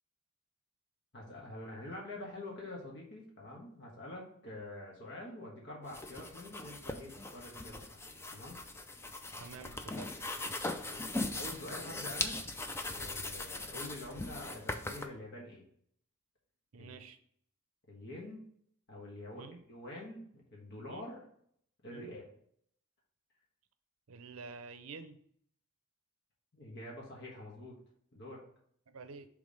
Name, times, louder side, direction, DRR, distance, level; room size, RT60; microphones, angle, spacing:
voice 1, 1.1-8.6 10.9-12.4 12.8-15.6 16.8-17.0 17.9-18.4 18.9-21.2 21.8-22.3 26.5-27.8 28.1-28.4, left 1 dB, 55° left, -2 dB, 1.5 m, -46 dB
sound 1, 5.8-15.0, left 2 dB, 10° left, 0.4 m, -40 dB
voice 2, 9.4-10.2 16.7-17.2 19.4-19.6 20.9-21.1 21.9-22.1 24.1-25.2 28.9-29.3, right 4 dB, 70° right, 10 dB, 0.6 m, -49 dB
5.2 x 3.5 x 5.2 m, 0.64 s
head